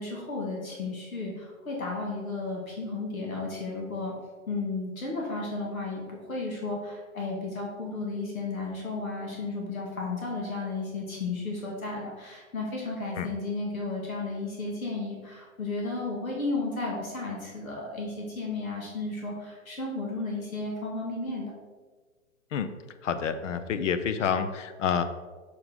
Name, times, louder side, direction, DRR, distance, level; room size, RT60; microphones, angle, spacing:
voice 1, 0.0-4.1 4.5-21.5, left 3 dB, 85° left, -2 dB, 2.2 m, -33 dB
voice 2, 23.0-25.0, left 7 dB, 65° left, 10 dB, 0.8 m, -28 dB
6.8 x 6.5 x 3.8 m, 1.4 s
hypercardioid pair, 120°, 40 cm